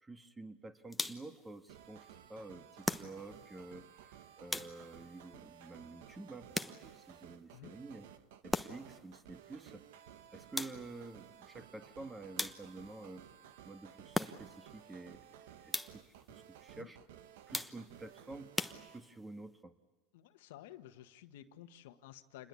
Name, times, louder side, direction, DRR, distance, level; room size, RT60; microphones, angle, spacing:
voice 1, 0.0-8.1 8.4-9.8 10.3-13.3 13.6-17.0 17.5-18.5 18.9-19.7, right 2 dB, 15° right, 8 dB, 1.8 m, -50 dB
sound 1, 0.9-1.4 2.8-3.5 4.5-5.1 6.5-7.1 8.5-9.0 10.6-11.1 12.4-12.9 14.1-14.7 15.7-16.2 17.5-18.0 18.6-19.3, left 2 dB, 5° left, 1.1 m, -39 dB
sound 2, 1.7-19.0, right 10 dB, 80° right, 1.5 m, -56 dB
voice 2, 20.1-22.5, left 12 dB, 80° left, 8 dB, 1.6 m, -53 dB
28.0 x 21.0 x 8.6 m, 1.2 s
supercardioid pair, 115°, 0 cm